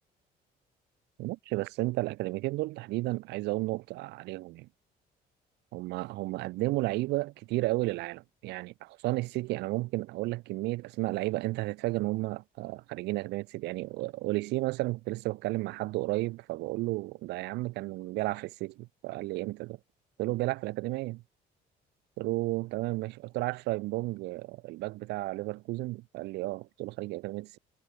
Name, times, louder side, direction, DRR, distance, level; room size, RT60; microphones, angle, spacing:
voice 1, 1.2-4.7 5.7-19.8 20.2-21.2 22.2-27.6, right 20 dB, 90° right, 3.0 m, -33 dB
cardioid pair, 110°, 17 cm